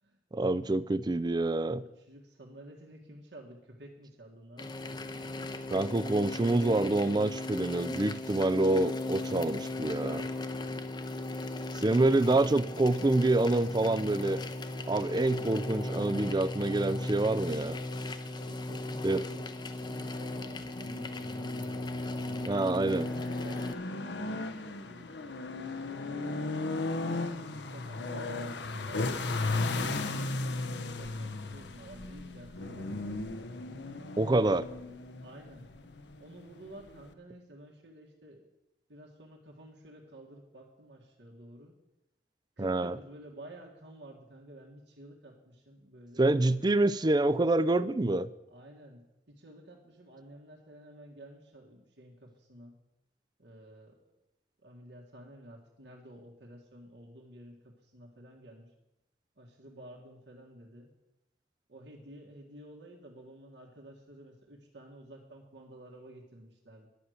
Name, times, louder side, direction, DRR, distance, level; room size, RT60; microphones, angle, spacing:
voice 1, 0.3-1.8 5.7-10.3 11.8-14.4 14.9-17.8 19.0-19.2 22.5-23.1 34.2-34.6 42.6-43.0 46.2-48.3, right 2 dB, 25° right, 16 dB, 0.4 m, -27 dB
voice 2, 1.8-4.7 18.4-21.8 23.4-25.2 26.1-26.4 27.0-33.1 35.2-35.7 36.2-38.4 38.9-41.7 42.6-46.2 48.5-49.0 49.3-52.7 53.4-54.2 54.6-58.7 59.4-60.9 61.7-66.9, right 1 dB, 75° right, -1 dB, 1.9 m, -51 dB
sound 1, 4.6-23.7, left 2 dB, 25° left, 0.7 m, -37 dB
sound 2, 20.6-37.1, left 2 dB, 80° left, 1.0 m, -36 dB
11.5 x 6.6 x 9.4 m, 0.90 s
head